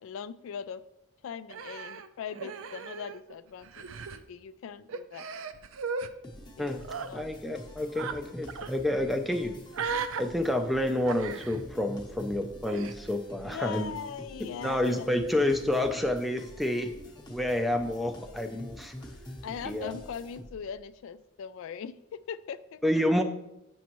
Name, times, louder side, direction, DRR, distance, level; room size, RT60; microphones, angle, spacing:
voice 1, 0.0-0.8 1.2-5.3 6.6-6.7 7.1-7.6 13.4-15.1 15.9-16.0 19.4-22.8, left 7 dB, 70° left, 14 dB, 0.3 m, -40 dB
Human voice, 1.5-3.3 3.6-4.2 4.9-6.1 6.8-7.1 8.0-8.2 8.5-8.7 9.7-10.2 11.1-11.6 12.7-13.0, right 5 dB, 70° right, 0.4 m, -36 dB
sound 1, 6.2-20.8, equal, 20° left, 0.8 m, -46 dB
voice 2, 7.1-9.5 10.2-13.9 14.6-16.9 17.3-18.9 19.6-19.9 22.8-23.2, left 1 dB, ahead, 6 dB, 0.4 m, -29 dB
8.1 x 6.2 x 3.0 m, 0.86 s
head